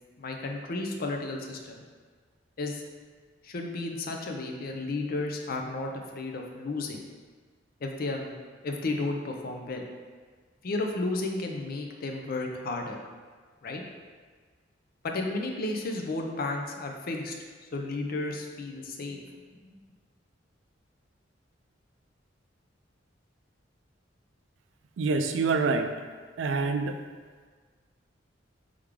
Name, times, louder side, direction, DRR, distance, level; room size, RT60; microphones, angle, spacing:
voice 1, 0.2-1.8 2.6-2.8 3.4-7.0 7.8-8.4 8.6-9.9 10.6-13.0 13.6-13.8 15.0-17.3 17.7-19.2 19.6-19.7, left 2 dB, 50° left, 2 dB, 0.5 m, -33 dB
voice 2, 25.0-25.9 26.4-26.9, right 4 dB, 80° right, 6 dB, 0.3 m, -26 dB
3.4 x 3.3 x 3.5 m, 1.5 s
head